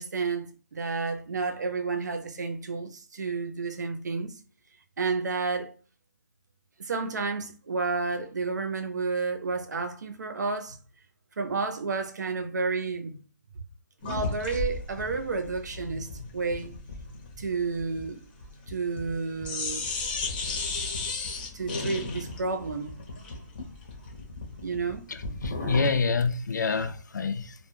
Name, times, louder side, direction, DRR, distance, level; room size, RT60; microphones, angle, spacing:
voice 1, 0.0-4.3 5.0-5.8 6.8-10.8 11.4-13.2 14.0-16.1 16.3-16.7 17.4-18.3 18.7-19.9 21.3-22.9 24.6-25.0 25.6-25.7, right 4 dB, 65° right, 0.6 m, -31 dB
sound 1, 14.0-19.2 19.4-26.0, left 3 dB, 30° left, 0.6 m, -35 dB
voice 2, 25.1-27.7, left 4 dB, 70° left, 0.5 m, -28 dB
2.2 x 2.2 x 3.0 m
hypercardioid pair, 165°, 10 cm